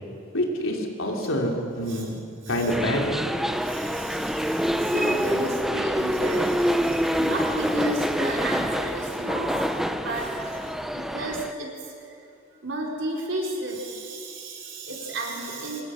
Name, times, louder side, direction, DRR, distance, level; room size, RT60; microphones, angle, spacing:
voice 1, 0.3-2.2 2.5-3.2, equal, 90° left, 1 dB, 3.4 m, -26 dB
voice 2, 2.4-2.8 3.6-11.7 12.0-12.2 12.5-15.8, right 1 dB, 65° right, -1 dB, 4.6 m, -33 dB
sound 1, 2.7-11.5, equal, ahead, 0.6 m, -26 dB
25.5 x 21.0 x 6.4 m, 2.6 s
head